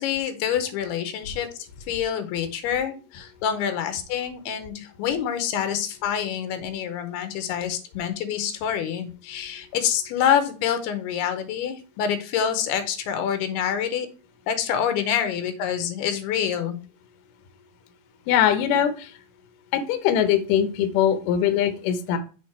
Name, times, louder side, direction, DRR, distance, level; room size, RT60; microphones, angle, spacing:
voice 1, 0.0-1.5 1.9-14.1 14.5-16.8, left 8 dB, 90° left, 2.9 m, -26 dB
voice 2, 18.3-19.1 19.7-22.2, left 9 dB, 75° left, 2.2 m, -21 dB
6.2 x 4.0 x 4.3 m
omnidirectional pair, 4.5 m